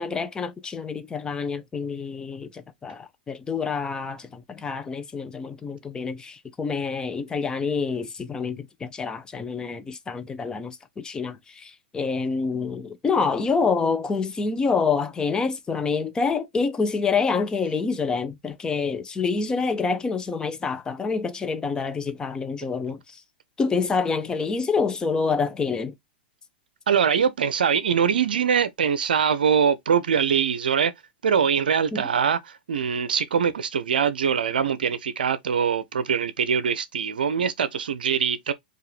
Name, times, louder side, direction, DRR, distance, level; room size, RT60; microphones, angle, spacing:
voice 1, 0.0-23.2 23.6-25.9 31.9-32.0, left 5 dB, 15° left, 0.6 m, -27 dB
voice 2, 26.9-30.9 31.2-38.5, right 7 dB, 70° right, 0.5 m, -23 dB
4.6 x 2.4 x 3.1 m
figure-of-eight pair, 100°, 5 cm